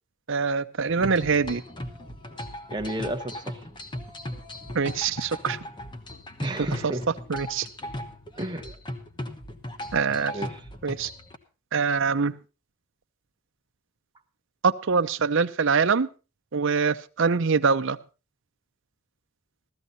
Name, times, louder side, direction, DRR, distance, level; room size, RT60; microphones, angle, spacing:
voice 1, 0.3-1.6 4.7-5.6 7.3-7.7 9.9-10.3 10.8-11.1 11.7-12.3 14.6-16.1 16.5-18.0, right 5 dB, 60° right, 9 dB, 0.6 m, -24 dB
sound 1, 0.9-11.4, left 1 dB, 20° left, 1.1 m, -38 dB
voice 2, 2.7-3.6 6.4-7.1 8.4-8.8 10.3-10.6, right 1 dB, 20° right, 5 dB, 1.0 m, -32 dB
15.5 x 13.5 x 4.0 m, 0.32 s
head